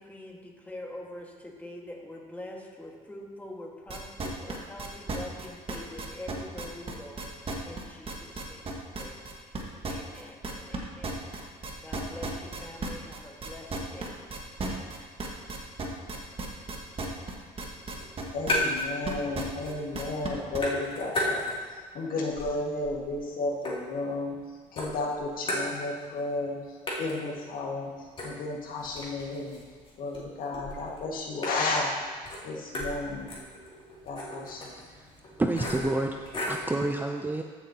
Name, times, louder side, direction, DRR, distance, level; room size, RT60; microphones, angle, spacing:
voice 1, 0.0-9.6 9.9-14.2, left 1 dB, 10° left, -1 dB, 1.7 m, -45 dB
sound 1, 3.9-10.8 11.0-20.6, right 3 dB, 35° right, 1.6 m, -35 dB
sound 2, 18.0-19.0 19.3-20.0 20.2-21.8 22.2-24.4 24.8-26.2 26.5-26.6 26.9-36.7, left 1 dB, 30° left, 2.8 m, -35 dB
voice 2, 18.3-21.4 21.9-29.6 30.0-31.9 32.4-33.3 34.0-34.7, left 2 dB, 55° left, -2 dB, 1.9 m, -33 dB
voice 3, 35.4-37.4, right 2 dB, 10° right, 3 dB, 0.5 m, -29 dB
13.5 x 7.4 x 2.9 m, 1.5 s
supercardioid pair, 95°, 17 cm